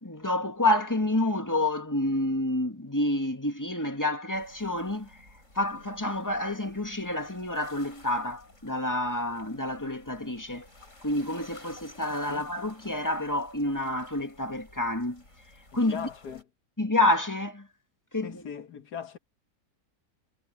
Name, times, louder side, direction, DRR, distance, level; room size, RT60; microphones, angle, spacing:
voice 1, 0.0-5.2 5.5-10.7 11.0-15.2 15.7-16.1 16.8-17.7 18.1-18.4, left 1 dB, 10° left, 2.2 m, -28 dB
sound 1, 4.3-16.4, left 2 dB, 50° left, 6.5 m, -54 dB
voice 2, 12.1-12.5 15.7-16.4 18.2-19.2, left 8 dB, 75° left, 2.1 m, -40 dB
omnidirectional pair, 1.8 m